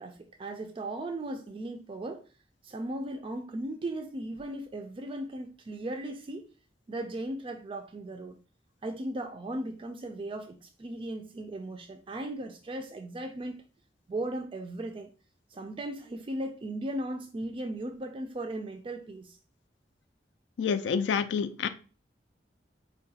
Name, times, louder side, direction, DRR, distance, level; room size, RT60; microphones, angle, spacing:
voice 1, 0.0-2.2 2.6-6.5 6.9-8.4 8.8-13.6 14.1-15.1 15.5-19.4, right 1 dB, 30° right, 0.3 m, -37 dB
voice 2, 20.6-21.7, left 6 dB, 85° left, 0.4 m, -28 dB
4.6 x 2.2 x 2.7 m
head